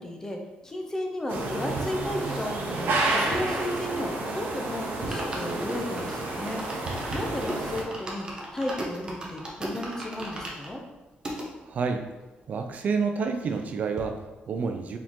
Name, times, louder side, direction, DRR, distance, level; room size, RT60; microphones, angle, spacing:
voice 1, 0.0-6.6 7.1-8.3 8.5-10.8, left 1 dB, 15° left, 2 dB, 0.5 m, -34 dB
sound 1, 1.3-7.8, right 2 dB, 70° right, 0.7 m, -30 dB
sound 2, 1.5-4.3 4.6-4.7 4.9-11.5 12.0-12.1 12.3-12.4 12.7-13.7 14.0-14.1, right 1 dB, 25° right, 0.7 m, -39 dB
voice 2, 11.6-12.0 12.5-15.0, right 5 dB, 45° right, 6 dB, 0.3 m, -29 dB
4.2 x 3.7 x 2.9 m, 1.1 s
wide cardioid pair, 160°, 4 cm